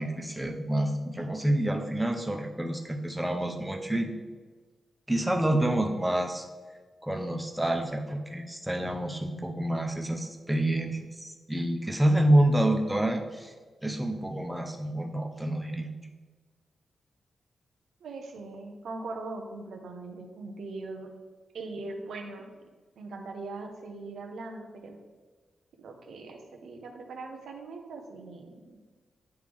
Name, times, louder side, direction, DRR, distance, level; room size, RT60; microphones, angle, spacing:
voice 1, 0.0-4.1 5.1-6.4 7.0-13.5 13.8-15.9, right 1 dB, 5° right, 2 dB, 0.6 m, -28 dB
voice 2, 18.0-21.1 21.5-22.5 23.0-25.0 25.8-28.8, right 3 dB, 85° right, 3 dB, 0.9 m, -40 dB
9.3 x 3.4 x 3.5 m, 1.4 s
wide cardioid pair, 120°, 0 cm